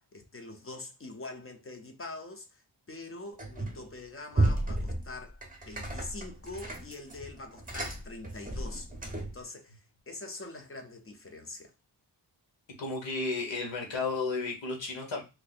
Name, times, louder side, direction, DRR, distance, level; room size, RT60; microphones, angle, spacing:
voice 1, 0.0-2.6 2.9-5.4 5.7-8.9 9.2-11.7, left 2 dB, 30° left, 0.5 m, -44 dB
sound 1, 3.4-3.9 4.3-9.4, right 1 dB, 20° right, 0.6 m, -33 dB
voice 2, 12.8-15.2, left 3 dB, 90° left, 1.2 m, -33 dB
2.7 x 2.5 x 3.9 m
wide cardioid pair, 175°, 43 cm